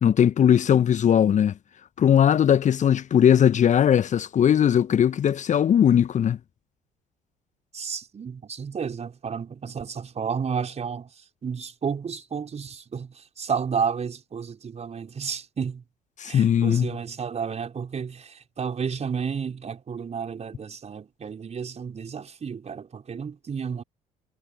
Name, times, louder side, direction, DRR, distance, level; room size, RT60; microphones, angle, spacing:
voice 1, 0.0-1.5 2.0-6.4 16.2-16.9, left 9 dB, 40° left, 1.3 m, -19 dB
voice 2, 7.7-15.8 16.2-23.8, right 6 dB, 35° right, 5.3 m, -32 dB
figure-of-eight pair, 50°, 19 cm